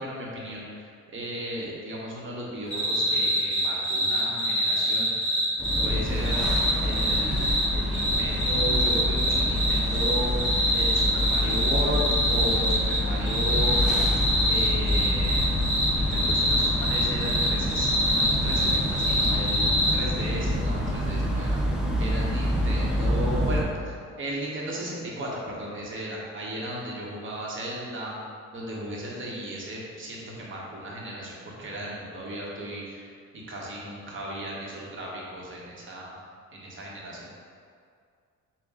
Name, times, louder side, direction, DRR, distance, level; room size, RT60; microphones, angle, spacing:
voice 1, 0.0-5.4 5.8-14.0 14.5-21.6 22.0-28.1 28.5-33.1 33.5-36.2 36.5-37.3, right 1 dB, 40° right, -4 dB, 1.1 m, -35 dB
sound 1, 2.7-5.8 6.2-7.6 7.9-13.0 13.3-19.9, equal, 40° left, 1.3 m, -25 dB
sound 2, 5.6-23.6, equal, ahead, 0.6 m, -27 dB
5.4 x 2.2 x 3.6 m, 2.2 s
cardioid pair, 90°, 30 cm